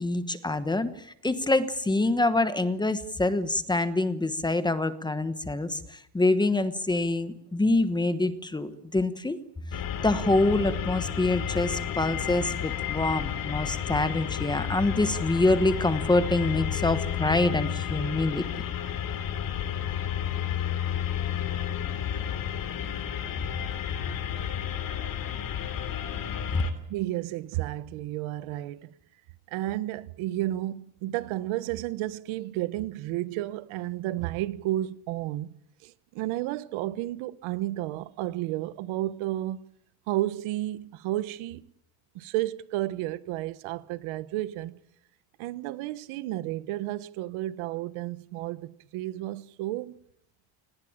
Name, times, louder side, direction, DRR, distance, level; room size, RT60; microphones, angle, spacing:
voice 1, 0.0-9.4 9.7-18.4 26.5-26.6, left 2 dB, 10° left, 1.2 m, -26 dB
sound 1, 9.7-26.7, left 9 dB, 45° left, 3.1 m, -31 dB
voice 2, 26.9-28.9 29.5-35.5 35.8-39.6 40.1-41.7 42.1-44.8 45.4-50.0, right 15 dB, 75° right, 1.4 m, -32 dB
28.0 x 19.5 x 8.8 m
cardioid pair, 165°, 48 cm